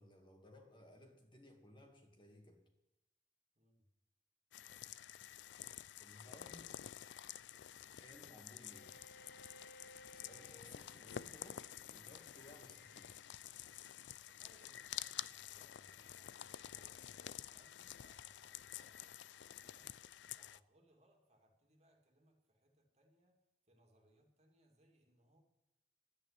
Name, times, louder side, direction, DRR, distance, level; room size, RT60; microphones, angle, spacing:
voice 1, 0.0-2.7 6.0-6.7 8.0-8.9 10.1-13.2, left 1 dB, 25° left, 2 dB, 2.1 m, -60 dB
voice 2, 3.6-3.9 14.3-19.0 19.6-19.9 20.3-25.4, right 1 dB, 40° right, 2 dB, 2.5 m, -71 dB
sound 1, 4.5-20.6, left 11 dB, 80° left, 0.4 m, -50 dB
Bowed string instrument, 8.7-13.3, equal, 60° left, 1.1 m, -62 dB
11.5 x 9.2 x 10.0 m, 0.90 s
head